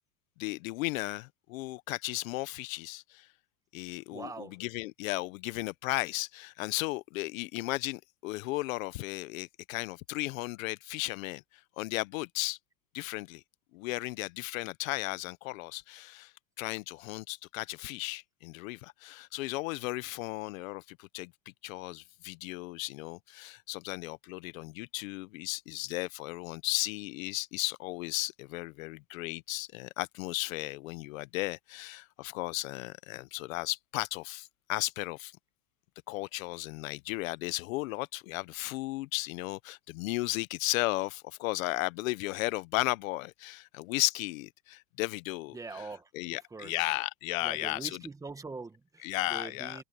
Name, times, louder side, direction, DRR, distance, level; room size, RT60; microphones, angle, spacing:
voice 1, 0.4-3.3 3.7-11.4 11.8-12.6 12.9-13.4 13.7-21.3 21.6-35.3 36.1-45.8 46.1-48.0 49.0-49.8, left 21 dB, 80° left, 0.9 m, -35 dB
voice 2, 4.1-4.6 45.5-46.1 46.5-46.7 47.4-49.8, right 3 dB, 10° right, 1.4 m, -43 dB
supercardioid pair, 155°, 40 cm